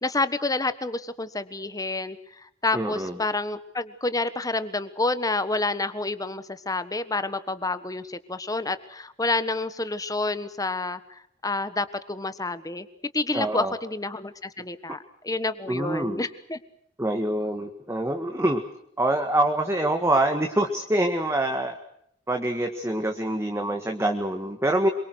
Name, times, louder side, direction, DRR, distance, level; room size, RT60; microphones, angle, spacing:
voice 1, 0.0-12.9 13.1-16.6, left 2 dB, 20° left, 13 dB, 1.4 m, -29 dB
voice 2, 2.7-3.1 13.3-13.7 15.7-16.2 17.0-18.6 19.0-21.8 22.3-24.9, right 1 dB, 15° right, 5 dB, 1.7 m, -25 dB
27.0 x 23.5 x 6.5 m, 0.71 s
head